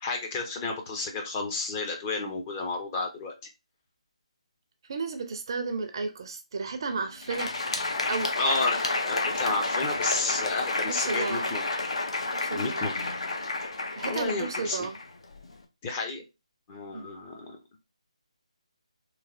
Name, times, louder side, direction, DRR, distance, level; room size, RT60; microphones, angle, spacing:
voice 1, 0.0-3.3 8.4-11.6 12.5-12.9 14.0-14.9 15.8-16.2 16.7-17.6, left 3 dB, 20° left, 0.6 m, -31 dB
voice 2, 4.9-7.5 8.1-8.4 10.9-11.5 12.3-12.9 14.0-15.0 16.9-17.1, right 4 dB, 45° right, 0.4 m, -33 dB
Crowd, 7.1-15.6, left 3 dB, 65° left, 0.6 m, -30 dB
3.1 x 2.3 x 2.5 m
figure-of-eight pair, 150°, 3 cm